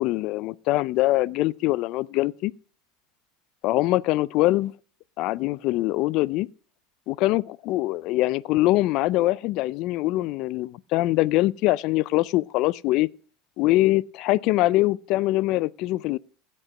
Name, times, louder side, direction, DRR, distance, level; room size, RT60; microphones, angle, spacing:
voice 1, 0.0-2.5 3.6-4.7 5.2-6.5 7.1-13.1 13.6-16.2, left 18 dB, 55° left, 0.4 m, -23 dB
16.0 x 5.4 x 6.0 m
supercardioid pair, 140°, 0 cm